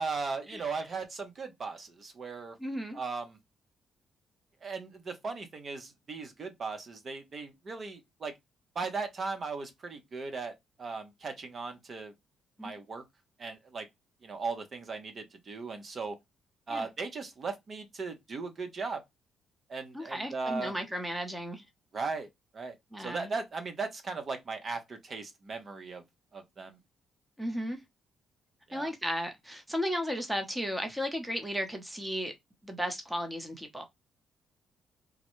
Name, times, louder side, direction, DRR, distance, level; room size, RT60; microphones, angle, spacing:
voice 1, 0.0-2.6 2.9-3.4 4.6-8.3 8.7-12.1 12.6-13.0 13.4-13.9 14.2-16.2 16.7-19.0 19.7-20.7 21.9-22.3 22.5-26.0 26.3-26.8 28.7-28.9, right 4 dB, 45° right, 0.8 m, -37 dB
voice 2, 2.6-3.0 12.6-12.7 16.7-16.9 19.9-21.6 22.9-23.3 27.4-27.8 28.7-32.3 32.6-33.8, equal, 5° right, 0.9 m, -34 dB
3.7 x 2.2 x 3.0 m
cardioid pair, 90°, 0 cm